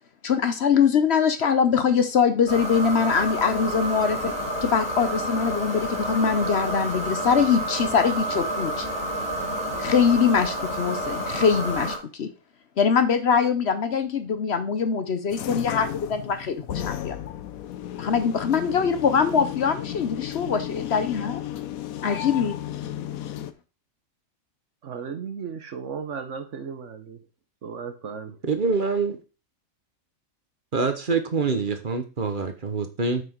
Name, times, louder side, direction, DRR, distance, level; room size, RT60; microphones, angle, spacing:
voice 1, 0.2-8.9 9.8-12.3 12.8-17.2 18.0-21.4 22.0-22.6, left 6 dB, 55° left, 10 dB, 0.9 m, -23 dB
sound 1, 2.5-12.0, right 1 dB, 30° left, 2.7 m, -29 dB
sound 2, 15.3-23.5, left 12 dB, 85° left, 1.1 m, -34 dB
voice 2, 24.8-27.2 27.6-28.4, right 6 dB, 60° right, 9 dB, 1.2 m, -35 dB
voice 3, 28.5-29.2 30.7-33.2, right 4 dB, 40° right, 8 dB, 1.2 m, -25 dB
8.0 x 6.1 x 4.6 m, 0.32 s
omnidirectional pair, 1.5 m